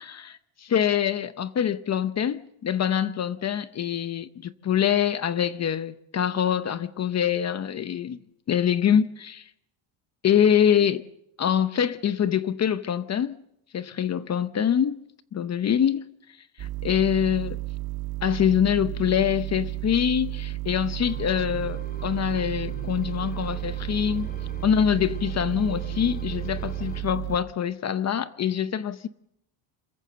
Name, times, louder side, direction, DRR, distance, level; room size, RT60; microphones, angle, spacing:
voice 1, 0.0-8.2 8.5-9.4 10.2-11.0 11.4-13.4 13.7-15.0 15.3-16.0 16.6-17.6 18.2-24.3 24.6-29.1, left 9 dB, 35° left, 0.8 m, -25 dB
sound 1, 16.6-27.4, right 17 dB, 50° right, 1.9 m, -33 dB
sound 2, 21.0-27.0, left 1 dB, 20° left, 3.7 m, -43 dB
26.5 x 14.5 x 7.6 m
cardioid pair, 135°, 47 cm